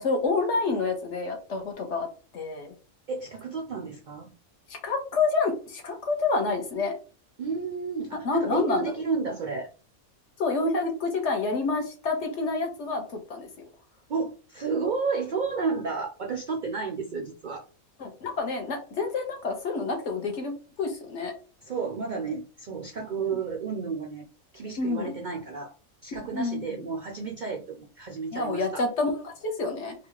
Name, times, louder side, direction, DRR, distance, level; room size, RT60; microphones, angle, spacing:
voice 1, 0.0-2.1 2.3-2.7 4.7-7.0 8.2-8.8 10.4-13.5 18.0-21.3 23.3-23.4 24.8-25.1 26.3-26.6 28.3-29.9, left 3 dB, 60° left, 3 dB, 1.2 m, -28 dB
voice 2, 3.1-4.3 7.4-9.7 14.1-17.7 21.6-24.3 24.5-25.7 26.0-28.9, right 5 dB, 75° right, 3 dB, 0.4 m, -32 dB
4.0 x 2.4 x 3.0 m, 0.36 s
omnidirectional pair, 1.5 m